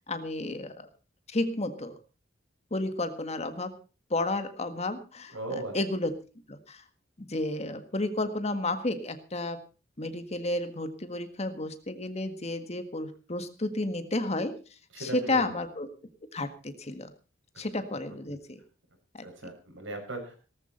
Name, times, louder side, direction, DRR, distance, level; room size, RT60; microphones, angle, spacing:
voice 1, 0.1-0.9 1.3-2.0 2.7-3.7 4.1-6.1 6.5-6.8 7.2-9.6 10.0-14.6 15.0-15.9 16.3-17.1 17.6-18.6 19.1-19.3, left 2 dB, 35° left, 9 dB, 1.7 m, -32 dB
voice 2, 5.3-5.7 14.9-15.6 17.5-17.7 19.2-20.4, right 2 dB, 80° right, 3 dB, 6.5 m, -37 dB
18.5 x 13.5 x 4.3 m, 0.35 s
head